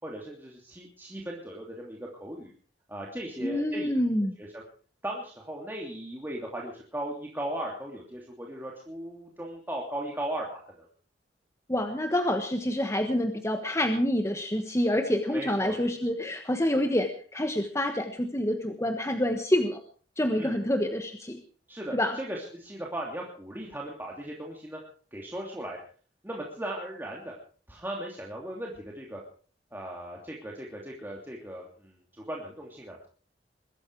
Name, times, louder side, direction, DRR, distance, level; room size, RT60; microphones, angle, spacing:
voice 1, 0.0-2.5 2.9-3.9 4.4-4.6 5.0-10.9 15.3-15.8 20.4-20.6 21.7-24.8 25.1-25.8 26.2-27.3 27.7-29.2 29.7-33.1, right 1 dB, 10° right, -2 dB, 2.9 m, -37 dB
voice 2, 3.4-4.4 11.7-19.8 20.2-21.4 21.9-22.2, left 1 dB, 15° left, 5 dB, 1.4 m, -27 dB
22.0 x 13.5 x 4.8 m, 0.43 s
head